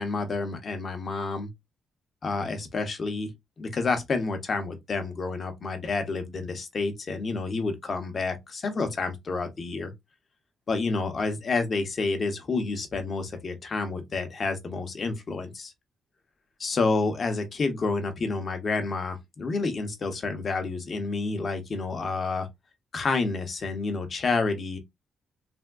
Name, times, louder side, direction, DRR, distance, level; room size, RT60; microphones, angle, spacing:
voice 1, 0.0-1.5 2.2-3.3 3.6-9.9 10.7-15.7 16.6-22.5 22.9-24.8, left 3 dB, 40° left, 0.7 m, -29 dB
3.4 x 2.1 x 2.2 m
cardioid pair, 120°, 0 cm